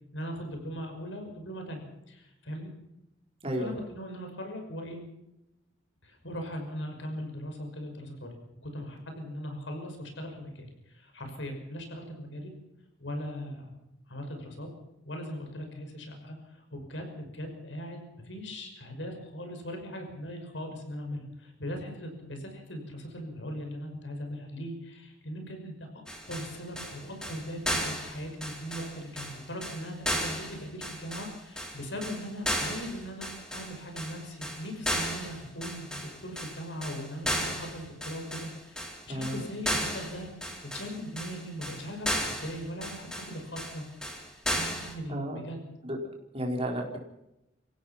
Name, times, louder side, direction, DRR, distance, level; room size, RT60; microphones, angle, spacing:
voice 1, 0.1-2.7 3.5-5.0 6.0-8.4 8.6-12.5 13.0-13.8 14.1-14.7 15.0-25.9 26.3-43.8 44.5-45.6, equal, 75° left, 4 dB, 5.9 m, -39 dB
sound 1, 26.1-44.9, equal, 5° left, 4.0 m, -35 dB
voice 2, 39.1-39.4 45.1-45.4 45.8-46.0 46.3-47.0, equal, 30° right, 1 dB, 4.4 m, -32 dB
28.0 x 16.5 x 5.8 m, 0.89 s
head